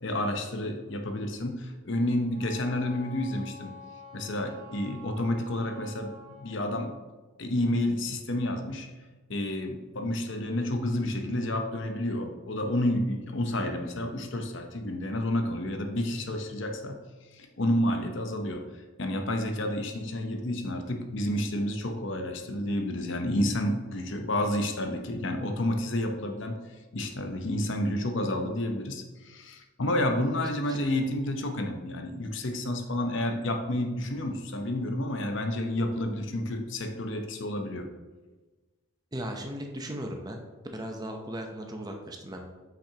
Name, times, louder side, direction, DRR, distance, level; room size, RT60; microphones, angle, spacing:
voice 1, 0.0-3.7 4.1-6.9 7.4-8.9 9.3-17.0 17.3-26.6 26.9-37.9, left 1 dB, 55° left, 5 dB, 0.7 m, -30 dB
Wind instrument woodwind instrument, 2.3-6.6, left 2 dB, 75° right, 1.8 m, -47 dB
voice 2, 39.1-40.4 40.7-42.4, right 1 dB, 20° right, 3 dB, 0.6 m, -37 dB
8.4 x 5.8 x 2.8 m, 1.3 s
head